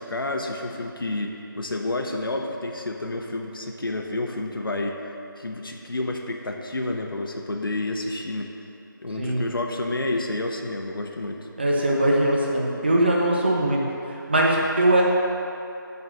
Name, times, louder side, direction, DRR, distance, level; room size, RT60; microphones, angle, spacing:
voice 1, 0.0-5.0 5.4-8.5 9.0-11.5, left 2 dB, 75° left, 2 dB, 1.0 m, -29 dB
voice 2, 11.6-15.0, right 1 dB, 30° right, -2 dB, 0.8 m, -21 dB
9.6 x 4.0 x 6.0 m, 2.8 s
figure-of-eight pair, 175°, 12 cm